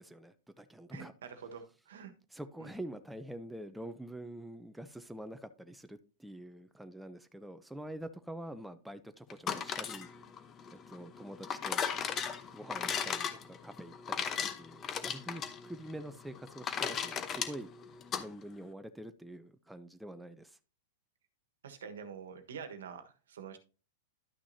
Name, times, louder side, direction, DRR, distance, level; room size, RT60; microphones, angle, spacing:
voice 1, 0.0-1.1 2.3-10.1 10.9-11.8 12.5-17.7 18.2-20.6, right 1 dB, 5° right, 0.6 m, -46 dB
voice 2, 0.9-2.1 2.6-2.7 21.6-23.6, right 6 dB, 85° right, 1.3 m, -46 dB
sound 1, 9.3-18.3, left 7 dB, 25° left, 0.9 m, -37 dB
11.5 x 6.1 x 2.7 m
hypercardioid pair, 130°, 0 cm